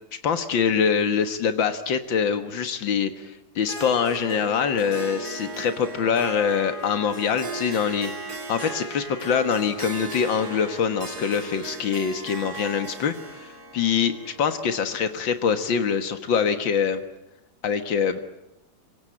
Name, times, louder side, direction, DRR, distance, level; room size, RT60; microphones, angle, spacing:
voice 1, 0.2-8.1 8.5-17.0 17.6-18.2, left 7 dB, 90° left, 9 dB, 2.3 m, -24 dB
Harp, 3.6-15.4, right 2 dB, 55° right, 3.7 m, -37 dB
27.5 x 25.0 x 8.7 m, 0.89 s
omnidirectional pair, 2.0 m